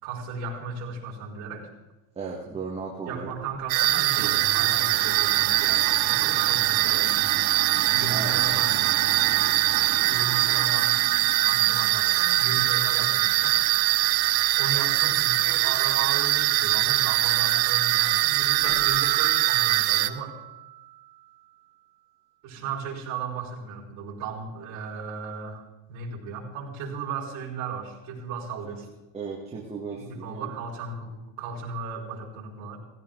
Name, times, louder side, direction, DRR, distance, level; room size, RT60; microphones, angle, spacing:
voice 1, 0.0-1.7 3.1-7.4 7.9-8.7 10.0-11.0 11.4-13.6 14.6-20.4 22.4-25.6 25.9-28.9 29.9-32.8, right 5 dB, 35° right, -3 dB, 5.5 m, -35 dB
voice 2, 2.2-3.3 8.1-8.4 29.1-30.5, right 5 dB, 10° right, -3 dB, 1.7 m, -35 dB
Domestic sounds home sounds, 3.3-19.1, right 9 dB, 65° right, 2.4 m, -39 dB
sound 1, 3.7-20.1, right 17 dB, 90° right, 1.0 m, -22 dB
Keyboard (musical), 18.6-21.0, right 8 dB, 25° left, 6.0 m, -34 dB
17.0 x 16.0 x 3.9 m, 1.0 s
supercardioid pair, 155°, 50 cm